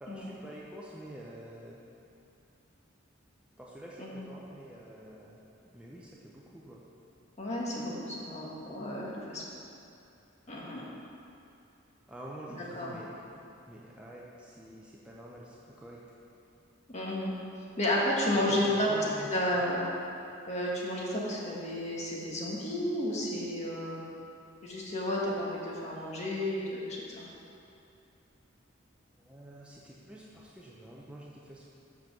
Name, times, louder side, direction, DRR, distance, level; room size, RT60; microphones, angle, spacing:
voice 1, 0.0-1.8 3.6-6.8 12.1-13.1 13.3-16.0 18.3-19.3 19.5-19.6 29.2-31.7, right 1 dB, 5° right, -5 dB, 0.6 m, -47 dB
voice 2, 7.4-9.4 10.5-10.8 12.5-12.9 16.9-17.3 17.8-19.0 19.3-19.8 20.5-24.0 24.6-27.2, left 1 dB, 35° left, -4 dB, 1.4 m, -32 dB
6.1 x 5.5 x 6.5 m, 2.7 s
head